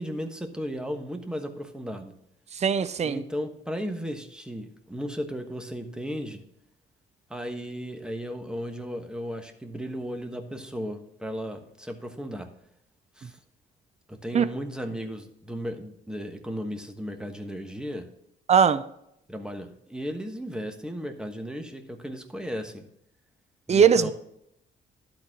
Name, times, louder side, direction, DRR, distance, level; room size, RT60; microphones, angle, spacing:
voice 1, 0.0-2.2 3.0-6.4 7.3-12.5 13.2-13.4 14.1-18.1 19.3-22.8 23.7-24.1, equal, 5° right, 1.3 m, -35 dB
voice 2, 2.5-3.2 14.3-14.5 18.5-18.8 23.7-24.1, right 7 dB, 35° right, 0.6 m, -20 dB
11.5 x 4.2 x 6.2 m
cardioid pair, 90°, 20 cm